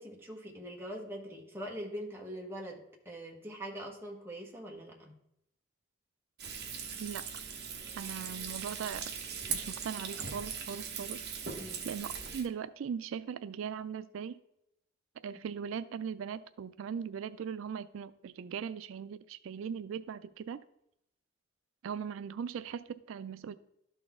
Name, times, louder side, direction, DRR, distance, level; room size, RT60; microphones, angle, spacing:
voice 1, 0.0-5.2 11.5-11.8, equal, 10° right, -1 dB, 1.2 m, -43 dB
Frying (food), 6.4-12.5, right 6 dB, 55° right, 1.0 m, -40 dB
voice 2, 8.0-9.0 9.5-11.2 11.8-14.4 15.2-20.6 21.8-23.5, right 7 dB, 85° right, 13 dB, 0.3 m, -39 dB
12.5 x 4.1 x 3.6 m, 0.79 s
head